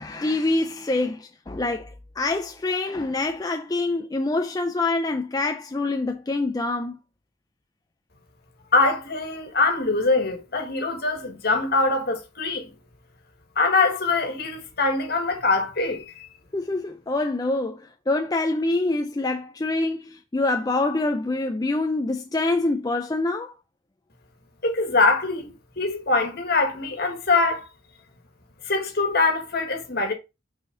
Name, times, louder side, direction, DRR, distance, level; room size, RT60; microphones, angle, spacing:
voice 1, 0.0-7.0 16.5-23.5, left 2 dB, 20° left, 0.4 m, -25 dB
voice 2, 8.7-12.7 13.6-16.1 24.6-25.5 25.8-27.7 28.7-30.1, left 3 dB, 50° left, 1.7 m, -23 dB
6.1 x 5.0 x 3.8 m
head